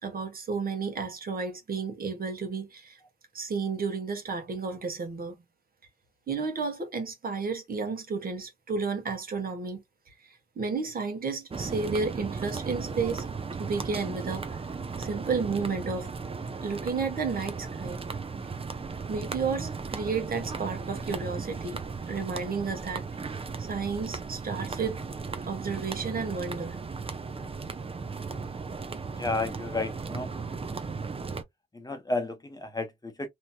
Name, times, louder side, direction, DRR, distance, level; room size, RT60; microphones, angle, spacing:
voice 1, 0.0-3.0 3.3-5.4 6.3-9.8 10.3-13.2 13.6-14.6 15.0-16.1 16.6-18.0 19.1-23.3 23.6-25.0 25.4-26.8, right 4 dB, 50° right, 1.3 m, -32 dB
sound 1, 11.5-31.4, right 4 dB, 30° right, 0.7 m, -36 dB
voice 2, 29.2-30.3 31.7-33.3, left 2 dB, 20° left, 1.0 m, -32 dB
3.0 x 2.8 x 2.3 m
supercardioid pair, 55°, 19 cm